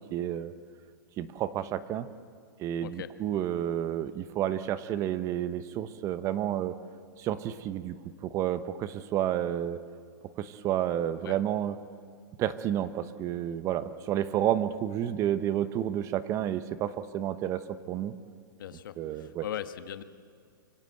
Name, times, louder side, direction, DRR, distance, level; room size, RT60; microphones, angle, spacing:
voice 1, 0.1-0.5 1.2-2.1 2.6-6.7 7.2-7.9 8.2-9.8 10.4-11.8 12.4-18.1 19.0-19.4, right 11 dB, 25° right, 13 dB, 1.0 m, -30 dB
voice 2, 2.8-3.1 11.2-11.4 18.6-20.0, left 11 dB, 70° left, 10 dB, 1.6 m, -39 dB
26.0 x 24.5 x 7.9 m, 2.1 s
hypercardioid pair, 145°, 12 cm